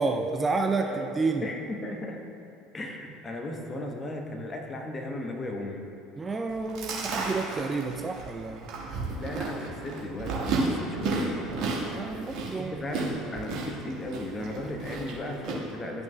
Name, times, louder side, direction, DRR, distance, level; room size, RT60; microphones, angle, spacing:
voice 1, 0.0-1.5 6.2-8.7 11.9-12.8, right 3 dB, 20° right, 3 dB, 0.4 m, -30 dB
voice 2, 0.8-2.2 2.7-5.8 9.2-11.4 12.7-16.0, left 1 dB, 25° left, 1 dB, 1.1 m, -36 dB
Chewing mastication, 6.5-15.5, right 3 dB, 50° right, 1.5 m, -33 dB
12.0 x 6.0 x 2.2 m, 2.6 s
figure-of-eight pair, 65°, 0 cm